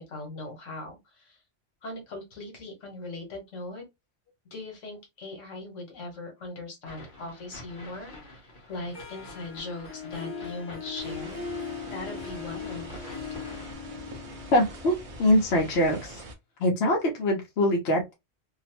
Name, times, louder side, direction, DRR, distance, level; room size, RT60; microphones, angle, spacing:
voice 1, 0.0-1.4 1.8-3.8 4.5-11.5 11.9-12.9, left 2 dB, 80° left, 1.4 m, -40 dB
sound 1, 6.8-13.7, left 1 dB, 40° left, 1.2 m, -48 dB
Harp, 8.9-15.8, left 5 dB, 25° left, 0.7 m, -39 dB
sound 2, 11.0-16.3, right 1 dB, 50° right, 0.4 m, -44 dB
voice 2, 14.5-16.2 16.6-18.1, left 1 dB, 65° left, 1.0 m, -23 dB
2.9 x 2.0 x 2.7 m
omnidirectional pair, 1.3 m